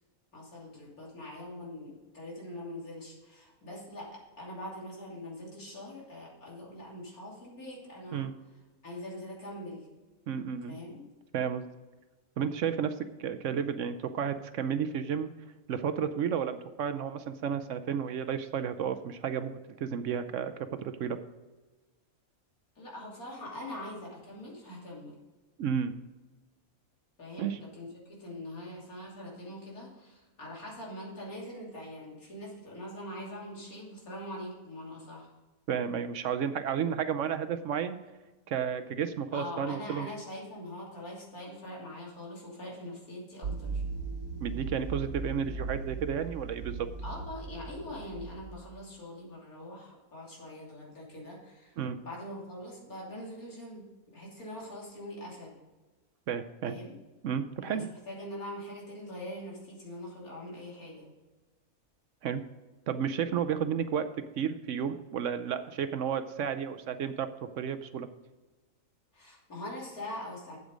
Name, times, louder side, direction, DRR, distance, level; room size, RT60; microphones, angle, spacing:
voice 1, 0.3-8.3 8.8-9.9 10.7-11.0 22.8-25.1 27.2-35.3 39.3-43.8 47.0-53.8 54.1-55.6 56.6-57.0 57.6-61.1 69.1-70.6, left 1 dB, 80° left, -4 dB, 3.5 m, -43 dB
voice 2, 10.3-10.8 11.3-11.6 12.4-15.3 15.7-21.2 25.6-25.9 27.4-27.6 35.7-38.0 38.5-40.1 44.4-46.9 51.8-52.0 56.3-56.8 57.2-57.8 62.2-62.4 62.9-64.1 64.4-67.3 67.6-68.1, right 7 dB, 65° right, 11 dB, 0.9 m, -32 dB
sound 1, 43.4-48.6, right 4 dB, 85° right, 1.5 m, -38 dB
8.1 x 8.1 x 5.1 m, 1.2 s
omnidirectional pair, 1.5 m